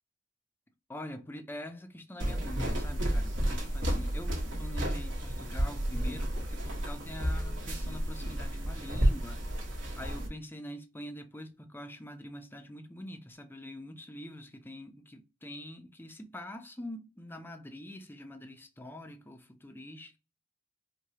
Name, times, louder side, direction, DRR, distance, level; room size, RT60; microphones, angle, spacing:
voice 1, 0.9-20.2, left 1 dB, 10° left, 0.5 m, -45 dB
sound 1, 2.2-10.3, equal, 75° right, 1.4 m, -31 dB
4.8 x 2.2 x 2.8 m
head